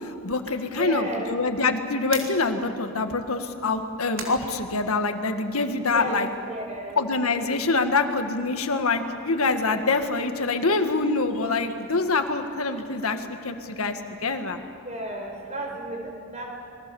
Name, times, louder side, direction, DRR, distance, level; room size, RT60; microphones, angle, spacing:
voice 1, 0.0-6.3 7.0-14.6, left 3 dB, 85° left, 6 dB, 1.7 m, -25 dB
voice 2, 0.7-1.3 5.8-7.0 14.8-16.4, right 1 dB, 30° right, 1 dB, 5.0 m, -33 dB
sound 1, 2.0-5.4 5.8-8.8 9.1-13.2, right 5 dB, 65° right, 3.4 m, -46 dB
27.5 x 22.0 x 7.1 m, 2.4 s
head